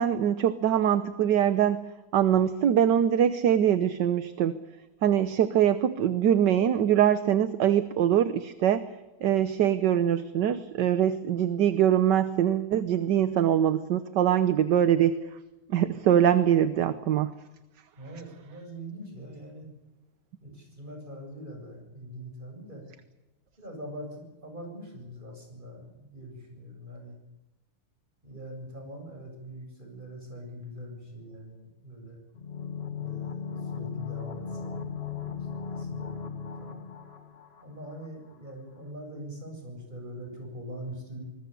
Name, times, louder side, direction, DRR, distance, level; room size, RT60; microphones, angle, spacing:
voice 1, 0.0-1.8 2.1-4.6 5.0-8.9 9.2-15.1 15.7-17.3, right 10 dB, 60° right, 12 dB, 1.4 m, -23 dB
voice 2, 17.9-19.7 20.4-22.8 23.6-27.2 28.2-32.2 33.0-34.9 35.2-36.8 37.6-41.2, right 1 dB, 20° right, 2 dB, 8.3 m, -43 dB
sound 1, 32.4-38.1 38.3-38.4, left 7 dB, 30° left, 1.7 m, -37 dB
25.0 x 21.0 x 7.0 m, 1.1 s
omnidirectional pair, 2.4 m